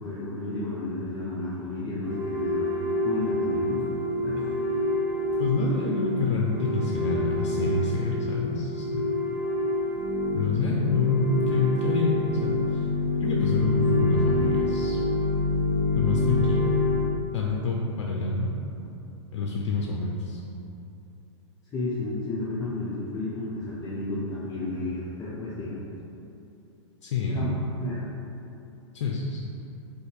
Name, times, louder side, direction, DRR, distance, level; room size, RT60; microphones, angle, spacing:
voice 1, 0.0-2.7 3.0-3.8 4.2-4.5 21.7-25.8 27.2-28.1, left 2 dB, 20° left, -9 dB, 0.5 m, -32 dB
sound 1, 2.0-17.1, left 2 dB, 80° right, 1.1 m, -27 dB
voice 2, 5.4-9.1 10.3-12.1 12.4-12.9 13.2-15.0 15.9-16.8 17.3-18.5 19.3-20.4 27.0-27.6 28.9-29.6, left 3 dB, 75° left, -2 dB, 0.4 m, -27 dB
2.6 x 2.5 x 3.9 m, 2.8 s
hypercardioid pair, 125°, 15 cm